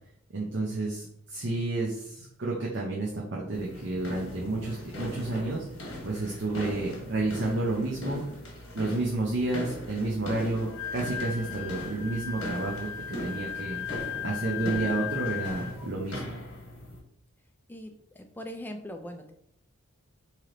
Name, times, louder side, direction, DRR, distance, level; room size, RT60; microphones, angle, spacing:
voice 1, 0.3-5.7 6.0-8.2 8.7-16.2, right 2 dB, 60° right, -3 dB, 0.7 m, -31 dB
sound 1, 3.5-17.0, equal, 70° left, 1.2 m, -40 dB
Wind instrument woodwind instrument, 10.6-15.9, left 10 dB, 90° left, 0.4 m, -36 dB
voice 2, 17.7-19.3, equal, 10° left, 4 dB, 0.4 m, -41 dB
3.2 x 2.9 x 3.8 m, 0.71 s
head